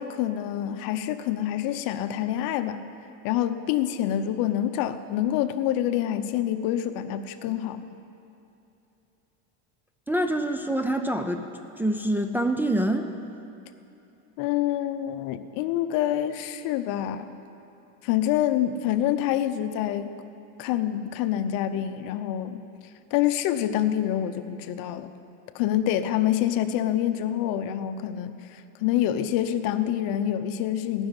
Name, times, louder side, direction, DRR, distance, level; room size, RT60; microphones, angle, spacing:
voice 1, 0.0-2.8 3.2-7.9 14.4-17.3 18.0-20.1 20.6-22.6 23.1-25.1 25.5-31.1, left 11 dB, 60° left, 10 dB, 0.9 m, -26 dB
voice 2, 10.1-11.5 11.8-13.1, right 1 dB, 5° right, 4 dB, 0.5 m, -25 dB
15.5 x 6.3 x 9.7 m, 2.8 s
supercardioid pair, 120°, 38 cm